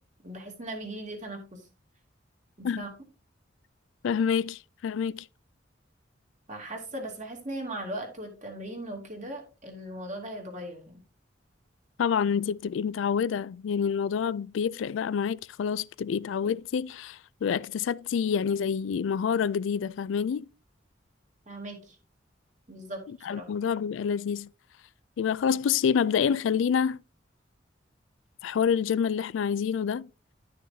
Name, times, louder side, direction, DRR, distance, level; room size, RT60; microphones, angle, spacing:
voice 1, 0.2-1.7 2.6-2.9 6.5-11.0 21.5-22.0 22.7-23.0 23.3-23.5, right 1 dB, 40° right, 2.5 m, -38 dB
voice 2, 4.0-5.3 12.0-20.5 23.2-24.5 25.2-27.0 28.4-30.1, left 7 dB, 80° left, 0.3 m, -27 dB
11.5 x 6.4 x 2.7 m
head